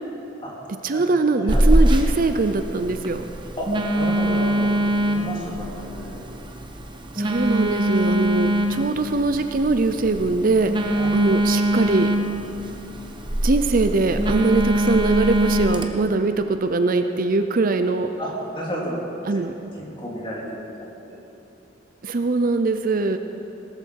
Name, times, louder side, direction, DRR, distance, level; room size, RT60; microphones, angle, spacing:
voice 1, 0.8-3.2 7.1-12.1 13.4-18.1 19.3-19.5 22.0-23.2, right 3 dB, 45° right, 8 dB, 0.6 m, -22 dB
Telephone, 1.5-15.9, right 1 dB, 25° right, 1.0 m, -23 dB
voice 2, 3.6-4.7 5.0-6.2 10.9-11.1 18.2-19.0 19.8-20.4 20.8-21.2, equal, 25° left, -4 dB, 3.0 m, -32 dB
18.5 x 13.5 x 4.7 m, 2.9 s
head